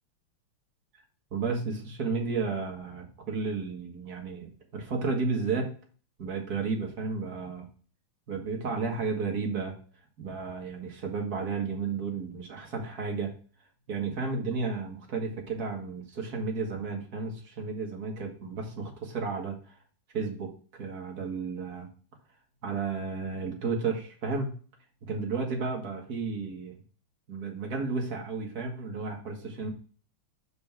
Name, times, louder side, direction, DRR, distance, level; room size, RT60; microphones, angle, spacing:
voice 1, 1.3-5.7 6.2-7.7 8.3-9.7 10.2-13.3 13.9-19.8 20.1-21.9 22.6-24.5 25.0-26.8 27.3-29.7, right 4 dB, 45° right, 1 dB, 1.9 m, -32 dB
5.3 x 5.2 x 5.8 m, 0.40 s
omnidirectional pair, 2.4 m